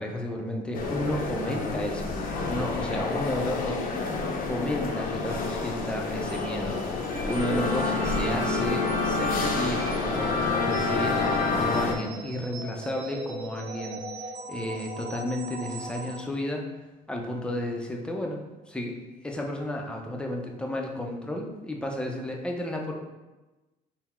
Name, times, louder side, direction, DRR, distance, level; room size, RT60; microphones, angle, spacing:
voice 1, 0.0-2.1 2.5-4.2 4.4-6.8 7.2-16.7 17.1-19.0 19.2-22.9, left 1 dB, 5° left, 1 dB, 0.5 m, -32 dB
sound 1, 0.7-12.0, left 3 dB, 55° left, 0.6 m, -28 dB
sound 2, 6.3-16.2, right 2 dB, 40° right, 1.0 m, -40 dB
3.8 x 2.0 x 4.3 m, 1.1 s
cardioid pair, 110°, 17 cm